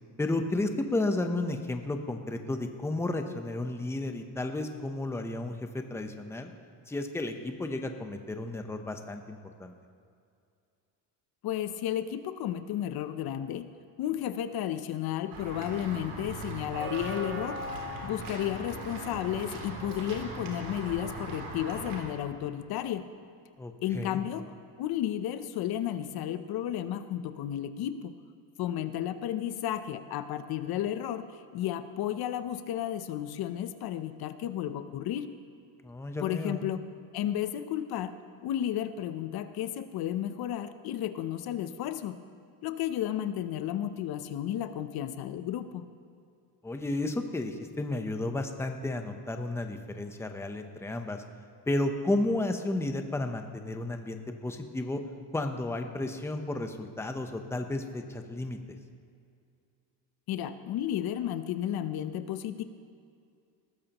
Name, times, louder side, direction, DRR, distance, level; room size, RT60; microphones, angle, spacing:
voice 1, 0.2-6.5 6.9-9.7 23.6-24.2 35.8-36.6 46.6-51.2 51.7-55.0 55.3-58.6, left 2 dB, 5° left, 5 dB, 0.8 m, -32 dB
voice 2, 11.4-13.7 14.0-17.6 18.0-23.1 23.8-28.1 28.6-35.3 36.2-36.8 37.1-38.1 38.4-42.2 42.6-45.9 60.3-62.6, left 11 dB, 60° left, 11 dB, 0.8 m, -33 dB
Walk footsteps / Bell, 15.3-22.0, right 2 dB, 85° right, 3.2 m, -39 dB
19.5 x 14.0 x 3.0 m, 2.4 s
cardioid pair, 135°, 41 cm